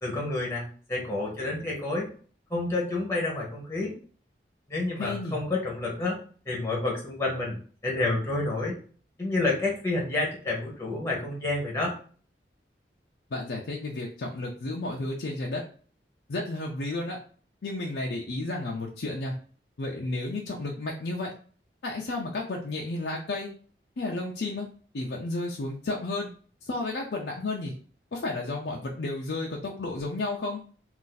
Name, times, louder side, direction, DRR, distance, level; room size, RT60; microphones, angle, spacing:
voice 1, 0.0-2.1 2.5-3.9 4.7-6.2 6.5-8.8 9.2-11.9, left 2 dB, 15° left, -2 dB, 0.8 m, -29 dB
voice 2, 5.0-5.4 13.3-15.6 16.3-17.2 17.6-19.4 19.8-21.3 21.8-23.5 24.0-24.7 24.9-26.3 26.6-27.7 28.1-30.6, left 2 dB, 75° left, -1 dB, 0.5 m, -32 dB
2.5 x 2.5 x 3.8 m, 0.43 s
head